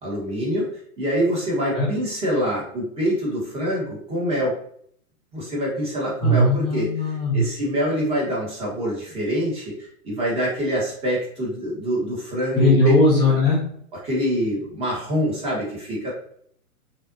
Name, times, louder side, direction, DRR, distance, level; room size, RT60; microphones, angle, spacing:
voice 1, 0.0-4.6 5.3-12.9 14.0-16.1, equal, 15° right, -5 dB, 1.3 m, -25 dB
voice 2, 6.2-7.4 12.5-13.6, left 1 dB, 10° left, -8 dB, 0.6 m, -18 dB
5.6 x 2.5 x 2.6 m, 0.65 s
hypercardioid pair, 135°, 44 cm